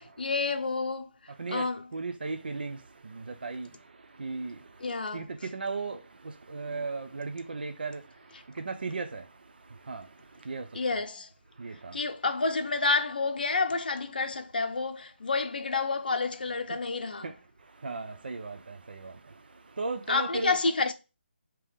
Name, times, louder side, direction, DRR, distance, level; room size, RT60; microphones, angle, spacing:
voice 1, 0.0-1.9 4.8-5.3 6.7-6.9 10.7-11.3 11.9-17.3 20.1-20.9, left 3 dB, 50° left, 0.7 m, -29 dB
voice 2, 1.9-4.8 5.1-10.8 11.6-12.0 17.2-17.3 17.6-20.6, right 3 dB, 55° right, 0.5 m, -37 dB
3.4 x 3.0 x 4.8 m
hypercardioid pair, 180°, 6 cm